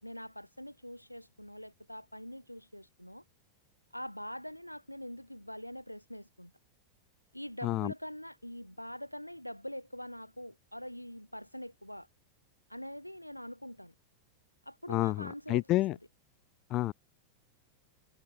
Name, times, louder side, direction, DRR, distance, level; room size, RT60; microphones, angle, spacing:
voice 1, 0.0-3.2 3.9-6.5 7.3-12.1 12.7-13.9 14.7-15.6 15.9-16.0, equal, 90° left, 2.6 m, -44 dB
voice 2, 7.6-7.9 14.9-16.0 16.7-16.9, left 17 dB, 35° left, 0.4 m, -29 dB
figure-of-eight pair, 90°, 0 cm